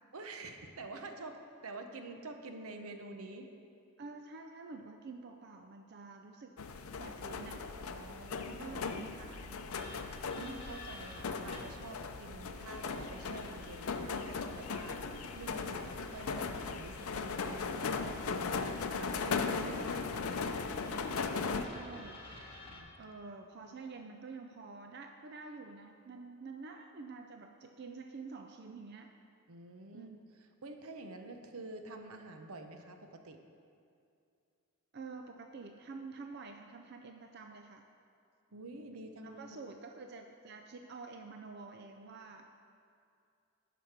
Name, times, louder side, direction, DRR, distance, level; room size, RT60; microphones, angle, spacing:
voice 1, 0.1-3.5 7.9-8.8 10.4-15.1 15.3-18.2 18.9-20.0 22.7-22.9 29.5-30.1 30.6-33.4 38.5-39.4, right 2 dB, 80° right, 6 dB, 0.8 m, -48 dB
voice 2, 4.0-6.6 6.9-7.6 8.6-9.6 19.9-20.0 21.4-22.2 23.0-29.1 29.9-30.2 34.9-37.8 39.2-42.5, right 4 dB, 50° right, 4 dB, 0.4 m, -48 dB
sound 1, 6.6-21.6, left 4 dB, 75° left, 0.5 m, -38 dB
sound 2, 9.7-11.9 12.6-14.0 14.5-18.2 18.6-22.8, left 2 dB, 25° left, 1.2 m, -53 dB
11.5 x 5.0 x 5.9 m, 2.5 s
head